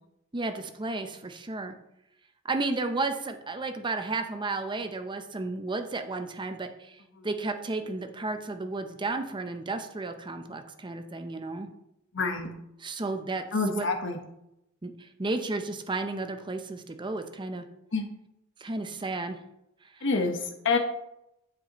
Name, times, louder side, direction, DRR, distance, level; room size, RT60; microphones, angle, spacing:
voice 1, 0.3-1.7 2.5-6.9 7.2-11.7 12.8-13.4 13.7-13.9 14.8-17.7 18.6-19.4, right 3 dB, 25° right, 7 dB, 0.6 m, -33 dB
voice 2, 12.1-12.5 13.5-14.2 17.9-18.1 20.0-20.8, left 4 dB, 60° left, 4 dB, 1.2 m, -27 dB
8.6 x 7.3 x 3.0 m, 0.84 s
head